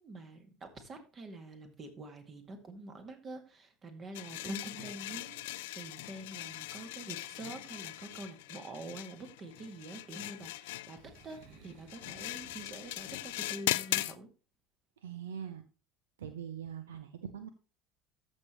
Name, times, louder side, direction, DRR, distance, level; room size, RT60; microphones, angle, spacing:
voice 1, 0.0-11.0 11.2-14.3, right 2 dB, 35° right, 6 dB, 2.2 m, -46 dB
sound 1, 4.1-14.1, left 18 dB, 70° left, 0.4 m, -39 dB
Boom, 10.9-13.7, right 5 dB, 60° right, 1.5 m, -59 dB
voice 2, 15.0-15.6 16.2-17.5, right 8 dB, 75° right, 10 dB, 0.7 m, -42 dB
13.5 x 6.4 x 3.1 m, 0.33 s
figure-of-eight pair, 70°, 0 cm